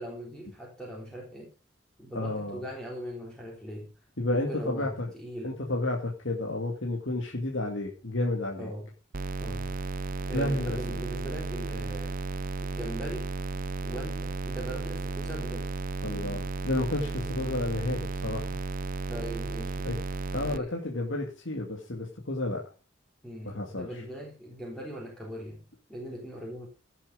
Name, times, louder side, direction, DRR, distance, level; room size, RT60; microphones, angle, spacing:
voice 1, 0.0-1.5 2.0-3.9 4.3-5.6 8.6-8.9 9.4-9.8 10.3-12.2 12.6-13.3 13.8-15.7 19.1-19.9 20.4-20.8 23.2-26.7, equal, 5° left, -2 dB, 3.6 m, -40 dB
voice 2, 2.1-2.6 4.2-5.1 5.4-8.7 10.3-11.0 16.0-18.5 19.8-20.0 20.3-22.6 23.4-24.0, left 2 dB, 70° left, -1 dB, 2.3 m, -31 dB
sound 1, 9.1-20.6, right 3 dB, 45° right, 0.6 m, -34 dB
16.5 x 7.4 x 5.1 m, 0.33 s
head